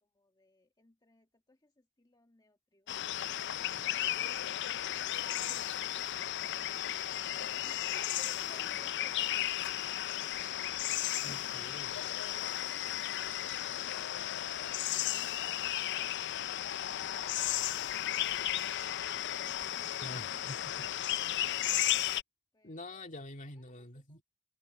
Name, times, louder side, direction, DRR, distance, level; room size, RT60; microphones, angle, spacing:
voice 1, 0.0-3.1 7.3-11.0 19.1-20.6 22.5-23.1 23.6-24.2, left 2 dB, 20° left, 1.6 m, -63 dB
sound 1, 2.9-22.2, left 12 dB, 55° left, 0.5 m, -34 dB
voice 2, 11.2-12.0 20.0-20.9 22.6-24.2, left 1 dB, 40° left, 2.1 m, -46 dB
head